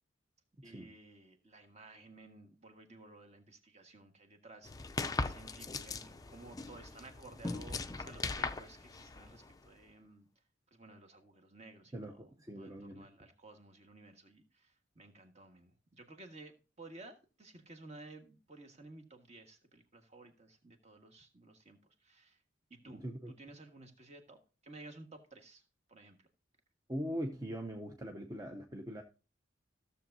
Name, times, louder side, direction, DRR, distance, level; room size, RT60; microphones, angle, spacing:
voice 1, 0.6-10.3 10.7-12.3 12.6-22.4 22.7-25.6 25.9-26.2, right 2 dB, 35° right, 1.5 m, -55 dB
sound 1, 4.6-9.7, left 3 dB, 20° left, 0.5 m, -40 dB
voice 2, 11.9-13.1 22.9-23.3 26.9-29.0, equal, 20° right, 0.7 m, -41 dB
15.0 x 7.0 x 2.7 m
head